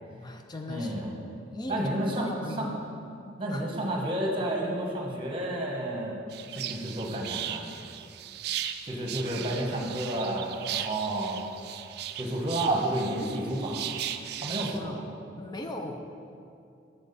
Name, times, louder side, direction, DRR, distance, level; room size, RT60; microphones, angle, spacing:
voice 1, 0.1-1.0 1.5-1.9 2.3-3.0 3.5-3.6 14.6-15.1 15.3-16.1, left 2 dB, 25° left, 4 dB, 0.4 m, -38 dB
voice 2, 0.7-1.1 1.7-2.3 2.6-2.7 3.4-6.2 6.5-7.7 8.8-11.4 12.2-13.9 14.4-15.0, right 1 dB, 30° right, 0 dB, 1.1 m, -30 dB
sound 1, 6.3-14.8, right 11 dB, 60° right, 0.3 m, -37 dB
7.2 x 7.1 x 4.1 m, 2.5 s
head